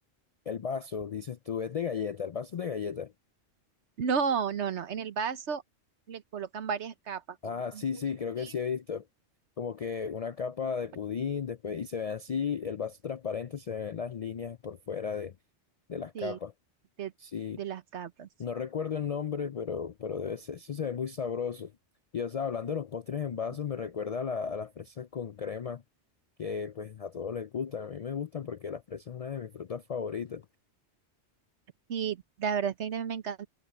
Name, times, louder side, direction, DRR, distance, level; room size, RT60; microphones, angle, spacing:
voice 1, 0.5-3.1 7.4-9.1 9.6-15.3 15.9-16.5 17.2-17.6 18.4-21.7 22.1-25.8 26.4-30.4, left 6 dB, 60° left, 0.4 m, -34 dB
voice 2, 4.0-5.6 6.1-7.2 7.7-7.8 8.4-8.5 16.1-16.4 17.0-17.1 17.6-18.3 31.9-33.5, right 6 dB, 75° right, 1.3 m, -32 dB
omnidirectional pair, 1.2 m